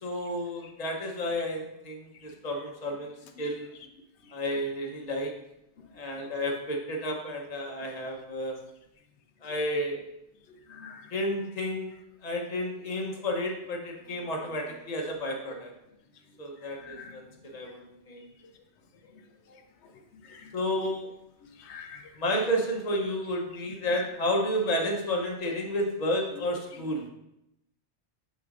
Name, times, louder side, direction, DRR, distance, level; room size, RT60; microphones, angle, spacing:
voice 1, 0.0-3.7 4.3-5.3 5.9-8.6 9.4-10.0 11.1-11.9 12.2-15.7 16.4-18.3 20.5-21.1 22.2-27.0, equal, 40° left, 1 dB, 1.0 m, -31 dB
voice 2, 10.7-11.1 16.8-17.1 20.2-20.5 21.6-22.0 23.9-24.0, left 6 dB, 90° left, 6 dB, 0.9 m, -45 dB
6.6 x 6.2 x 2.5 m, 0.82 s
omnidirectional pair, 1.1 m